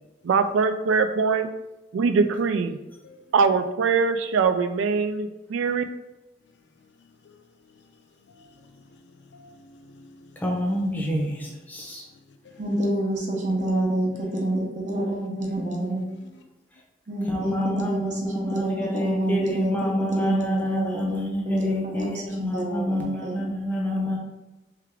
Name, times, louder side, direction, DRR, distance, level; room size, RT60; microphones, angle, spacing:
voice 1, 0.2-1.5 1.9-2.8 3.3-5.8, right 5 dB, 90° right, 9 dB, 0.3 m, -22 dB
voice 2, 3.0-3.3 7.0-8.0 8.3-10.4 11.1-11.9 12.4-12.7 15.6-16.4, left 2 dB, 65° left, 5 dB, 0.5 m, -53 dB
voice 3, 10.4-12.0 17.3-24.2, equal, 10° left, -1 dB, 0.7 m, -28 dB
voice 4, 12.6-16.0 17.1-21.3 21.8-23.4, right 1 dB, 40° right, -2 dB, 0.9 m, -27 dB
3.4 x 3.3 x 3.5 m, 1.0 s
head